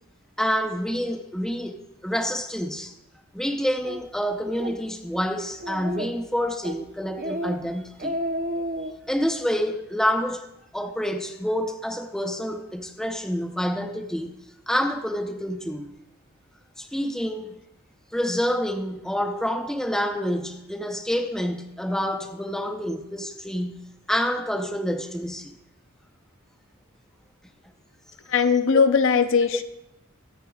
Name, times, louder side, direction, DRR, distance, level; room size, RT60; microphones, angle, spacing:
voice 1, 0.4-2.9 3.3-8.1 9.1-10.5 10.7-14.3 14.7-15.9 16.8-17.5 18.1-25.6 28.7-29.0, equal, 5° left, 0.7 m, -28 dB
Speech, 3.8-4.0 4.5-4.8 5.1-5.2 5.6-6.2 6.6-6.8 7.2-7.6 7.9-8.9, equal, 40° right, 0.8 m, -31 dB
voice 2, 28.3-29.6, left 5 dB, 60° left, 0.6 m, -19 dB
23.0 x 9.1 x 2.4 m
head